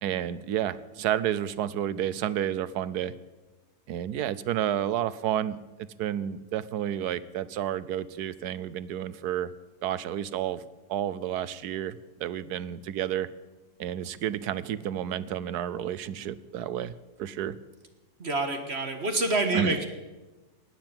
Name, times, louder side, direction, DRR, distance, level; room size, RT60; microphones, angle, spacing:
voice 1, 0.0-3.1 3.9-5.6 6.0-9.5 9.8-10.6 10.9-13.3 13.8-16.9 17.2-17.6 19.5-19.8, right 10 dB, 85° right, 16 dB, 1.2 m, -30 dB
voice 2, 18.2-19.9, right 2 dB, 45° right, 6 dB, 1.7 m, -27 dB
18.5 x 7.6 x 8.9 m, 1.2 s
omnidirectional pair, 1.7 m